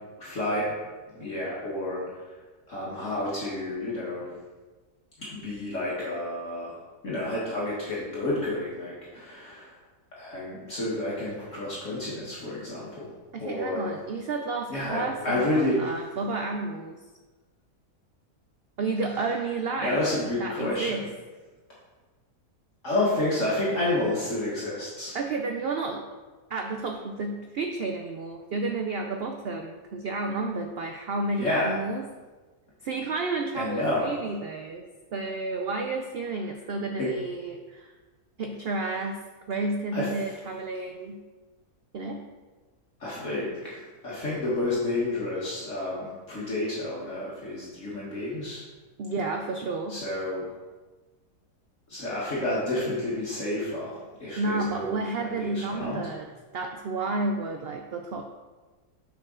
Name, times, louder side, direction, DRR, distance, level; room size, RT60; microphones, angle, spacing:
voice 1, 0.2-0.8 1.1-2.0 2.7-4.3 5.2-6.7 7.0-9.7 10.2-13.1 13.4-13.9 14.7-15.8 19.1-19.2 19.8-21.0 22.8-25.2 31.4-31.8 33.5-34.2 37.0-37.1 39.9-40.1 40.4-40.5 43.0-48.6 49.9-50.5 51.9-56.0, left 1 dB, 50° left, -7 dB, 1.8 m, -30 dB
voice 2, 13.3-17.0 18.8-20.0 20.4-21.1 25.1-26.1 26.5-32.1 32.8-34.8 35.1-37.9 38.4-41.2 41.9-42.3 49.0-50.0 54.4-56.3 56.5-58.3, right 3 dB, 75° right, 4 dB, 0.5 m, -31 dB
6.9 x 6.5 x 3.8 m, 1.3 s
omnidirectional pair, 1.7 m